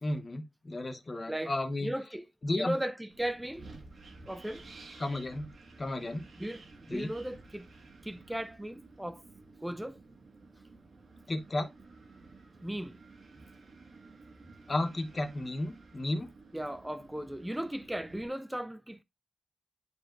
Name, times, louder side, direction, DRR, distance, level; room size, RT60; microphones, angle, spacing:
voice 1, 0.0-1.9 2.4-2.8 5.0-5.5 5.8-6.2 6.9-7.1 11.3-11.7 14.7-16.3, left 2 dB, 30° left, 0.9 m, -33 dB
voice 2, 1.8-2.2 2.5-3.7 4.3-4.6 6.4-7.7 8.0-9.2 9.6-10.0 12.6-13.0 16.5-19.0, right 1 dB, 5° right, 0.3 m, -36 dB
Wind, 3.1-18.3, right 3 dB, 55° right, 1.7 m, -53 dB
10.5 x 4.5 x 2.5 m
wide cardioid pair, 130°, 0 cm